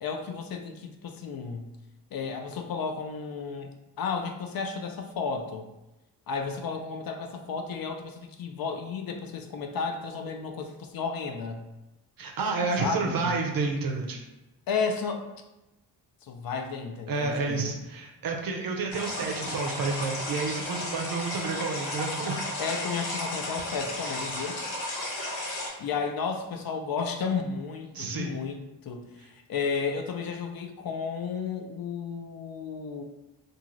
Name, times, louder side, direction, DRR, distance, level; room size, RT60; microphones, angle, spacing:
voice 1, 0.0-1.7 2.1-3.7 4.0-5.7 6.3-11.6 12.8-13.3 14.7-15.3 16.2-17.8 22.6-24.6 25.8-33.0, left 5 dB, 50° left, 4 dB, 0.5 m, -33 dB
voice 2, 12.2-14.2 17.1-22.4 27.9-28.4, right 4 dB, 50° right, 2 dB, 0.6 m, -30 dB
sound 1, 18.9-25.7, left 1 dB, 70° left, 1.1 m, -34 dB
2.5 x 2.4 x 3.0 m, 0.98 s
hypercardioid pair, 40°, 48 cm